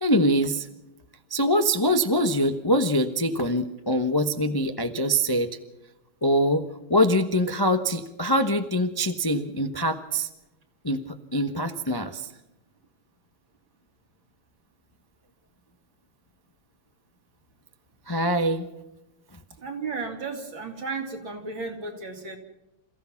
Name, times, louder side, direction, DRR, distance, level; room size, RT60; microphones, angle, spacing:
voice 1, 0.0-0.7 1.3-5.5 6.2-10.3 10.8-12.3 18.1-18.7, equal, 20° left, 7 dB, 0.6 m, -24 dB
voice 2, 19.6-22.4, right 4 dB, 60° right, 3 dB, 3.7 m, -34 dB
28.0 x 16.0 x 5.9 m, 0.97 s
omnidirectional pair, 2.4 m